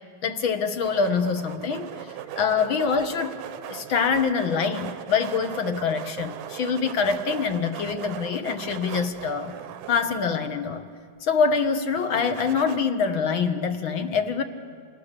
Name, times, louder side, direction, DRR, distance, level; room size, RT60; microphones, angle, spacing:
voice 1, 0.2-3.4 3.7-9.6 9.9-10.9 11.2-14.4, left 5 dB, 50° left, 8 dB, 1.8 m, -25 dB
sound 1, 0.8-10.7 12.0-12.8, right 11 dB, 75° right, 2.0 m, -39 dB
30.0 x 28.0 x 6.8 m, 2.1 s
omnidirectional pair, 3.3 m